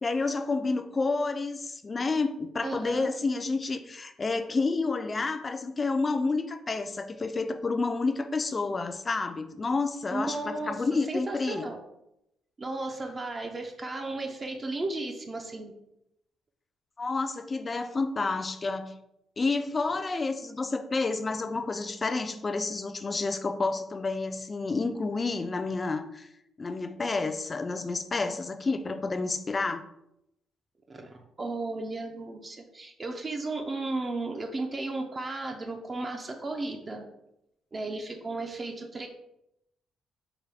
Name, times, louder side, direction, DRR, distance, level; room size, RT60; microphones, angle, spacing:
voice 1, 0.0-11.7 17.0-18.9 19.4-26.3 26.6-29.8, left 3 dB, 30° left, 9 dB, 0.4 m, -30 dB
voice 2, 2.6-3.1 10.1-11.8 12.6-15.7 30.9-37.1 37.7-39.1, right 2 dB, 35° right, 3 dB, 0.4 m, -34 dB
4.7 x 2.2 x 3.4 m, 0.83 s
cardioid pair, 90°, 0 cm